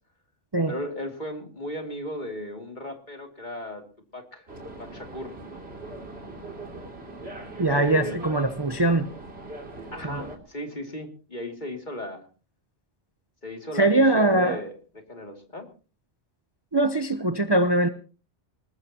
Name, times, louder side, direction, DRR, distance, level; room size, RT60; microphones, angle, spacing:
voice 1, 0.7-3.8 4.1-4.4 4.8-5.3 7.7-8.2 9.9-12.3 13.4-14.7 15.1-15.7, left 1 dB, 40° left, 2.8 m, -36 dB
sound 1, 4.5-10.4, right 2 dB, 60° right, 3.2 m, -40 dB
voice 2, 7.6-9.1 10.0-10.2 13.7-14.6 16.7-17.9, right 2 dB, 25° right, 0.8 m, -22 dB
20.5 x 20.0 x 2.9 m
omnidirectional pair, 1.2 m